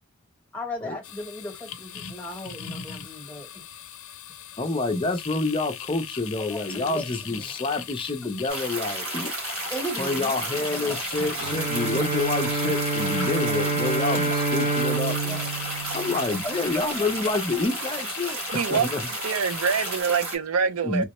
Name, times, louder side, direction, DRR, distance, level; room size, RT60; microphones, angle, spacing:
voice 1, 0.5-3.5 6.5-7.6 9.7-10.4 10.7-11.6 16.7-17.3, equal, 5° left, 1.0 m, -36 dB
sound 1, 1.0-20.0, left 9 dB, 75° left, 0.5 m, -39 dB
voice 2, 4.6-9.3 10.0-15.5 15.9-18.4 18.7-19.0 20.8-21.0, left 3 dB, 25° left, 0.5 m, -28 dB
sound 2, 8.5-20.4, right 2 dB, 70° right, 1.4 m, -33 dB
Bowed string instrument, 11.4-16.8, right 3 dB, 40° right, 0.9 m, -27 dB
voice 3, 18.5-18.9 19.2-21.0, right 6 dB, 85° right, 0.5 m, -25 dB
3.5 x 2.0 x 2.9 m
head